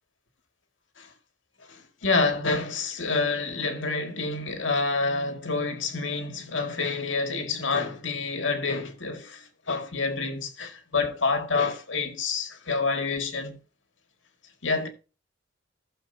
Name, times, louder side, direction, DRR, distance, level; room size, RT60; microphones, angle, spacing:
voice 1, 1.7-13.6 14.6-14.9, left 4 dB, 75° left, 2.0 m, -28 dB
15.5 x 6.9 x 2.7 m
head